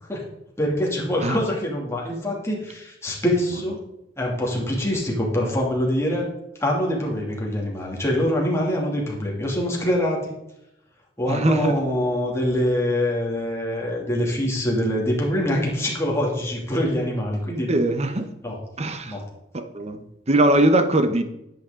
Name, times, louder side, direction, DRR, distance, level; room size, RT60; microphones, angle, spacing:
voice 1, 0.6-3.8 4.2-6.3 6.6-10.3 11.2-17.7 18.4-18.6 19.0-19.3, equal, 15° left, -2 dB, 2.5 m, -24 dB
voice 2, 11.3-11.7 17.7-18.3 18.8-19.2 19.5-21.2, right 1 dB, 35° right, 9 dB, 0.9 m, -21 dB
10.5 x 8.2 x 3.8 m, 0.83 s
head